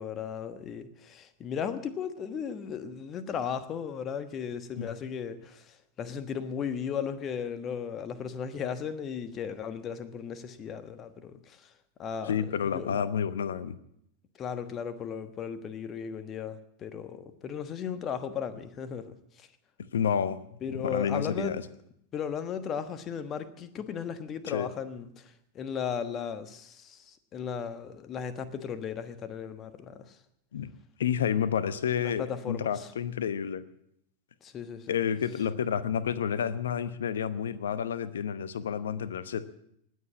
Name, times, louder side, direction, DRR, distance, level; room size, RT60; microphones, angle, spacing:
voice 1, 0.0-11.7 12.0-13.0 14.4-19.5 20.6-21.6 22.1-30.2 32.0-32.9 34.4-35.0, left 7 dB, 30° left, 1.3 m, -36 dB
voice 2, 12.3-13.7 19.9-20.4 20.7-21.6 24.4-24.7 30.5-30.7 31.0-33.6 34.9-39.5, left 8 dB, 65° left, 0.9 m, -30 dB
19.5 x 8.1 x 8.5 m
figure-of-eight pair, 90°, 0 cm